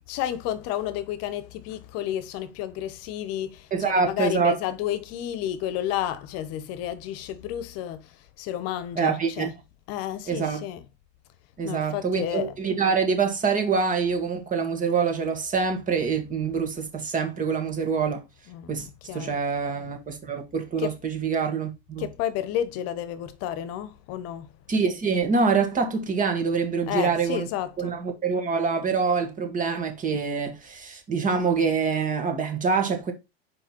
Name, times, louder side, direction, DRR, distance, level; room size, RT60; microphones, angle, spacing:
voice 1, 0.1-8.0 8.4-9.5 9.9-10.8 11.6-12.5 18.5-19.4 20.8-20.9 22.0-24.5 26.9-28.0, left 11 dB, 50° left, 1.1 m, -31 dB
voice 2, 3.7-4.6 9.0-9.5 10.3-10.6 11.6-18.2 18.7-22.1 24.7-27.5 27.8-33.1, right 5 dB, 25° right, 2.0 m, -25 dB
5.0 x 4.7 x 4.5 m
supercardioid pair, 110°, 31 cm